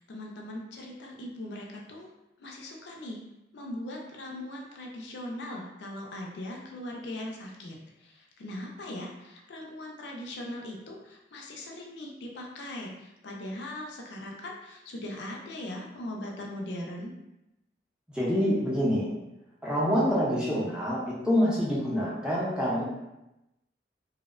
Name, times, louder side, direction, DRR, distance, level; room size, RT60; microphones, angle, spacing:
voice 1, 0.0-2.1 2.4-3.2 3.5-7.8 8.0-17.1, left 1 dB, 75° left, 0 dB, 0.4 m, -40 dB
voice 2, 18.1-19.1 19.6-22.8, equal, 5° right, -7 dB, 0.5 m, -26 dB
2.6 x 2.0 x 2.4 m, 0.93 s
head